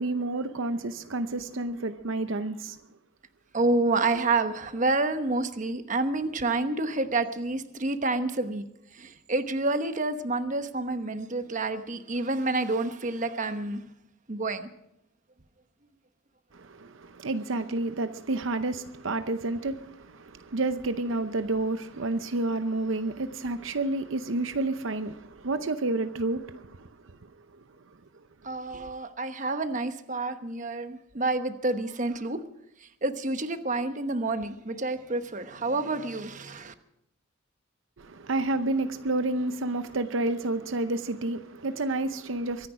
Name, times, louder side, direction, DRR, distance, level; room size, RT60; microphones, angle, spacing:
voice 1, 0.0-2.8 16.5-27.3 28.7-28.8 38.0-42.7, right 2 dB, 75° right, 0.7 m, -30 dB
voice 2, 3.5-8.6 8.9-13.8 14.3-14.7 28.4-32.5 32.8-36.7, right 2 dB, 40° right, 1.0 m, -29 dB
24.0 x 10.5 x 4.9 m
head